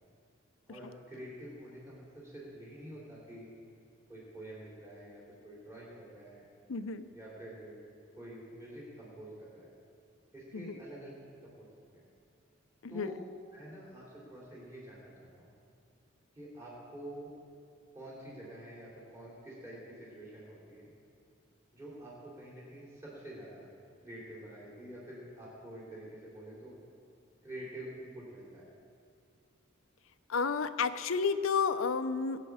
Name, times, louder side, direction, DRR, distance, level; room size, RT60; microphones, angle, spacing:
voice 1, 0.7-3.5 4.1-6.5 7.1-7.8 8.1-9.7 10.3-11.1 11.6-11.7 11.9-12.0 12.9-13.2 13.5-15.6 16.3-17.3 17.9-20.9 21.7-23.7 24.0-26.8 27.4-28.7, right 1 dB, 15° right, -7 dB, 3.6 m, -47 dB
voice 2, 6.7-7.1 10.5-10.8 12.8-13.1 30.3-32.4, left 5 dB, 85° left, 11 dB, 0.6 m, -31 dB
21.5 x 8.4 x 4.9 m, 2.3 s
head